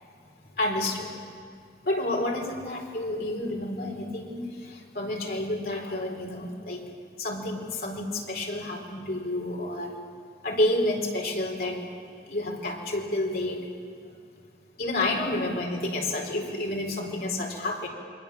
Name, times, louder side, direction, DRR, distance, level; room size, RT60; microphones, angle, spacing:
voice 1, 0.6-1.1 1.8-6.8 7.2-9.9 10.4-11.9 12.3-13.6 14.8-17.9, left 1 dB, 55° left, 0 dB, 4.4 m, -29 dB
29.5 x 22.5 x 7.3 m, 2.3 s
head